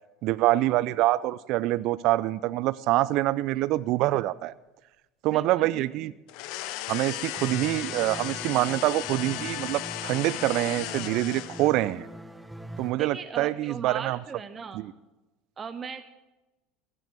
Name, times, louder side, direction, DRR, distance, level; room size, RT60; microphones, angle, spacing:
voice 1, 0.2-4.5 5.2-6.1 6.9-12.1 12.8-14.2 14.7-14.9, right 16 dB, 60° right, 18 dB, 0.4 m, -25 dB
voice 2, 5.3-5.9 13.0-14.9 15.6-16.0, right 6 dB, 30° right, 8 dB, 0.9 m, -38 dB
sound 1, 6.3-11.9, left 15 dB, 60° left, 0.7 m, -36 dB
sound 2, 7.4-12.9, right 1 dB, 5° right, 0.8 m, -42 dB
15.5 x 10.0 x 7.5 m, 1.0 s
hypercardioid pair, 75°, 0 cm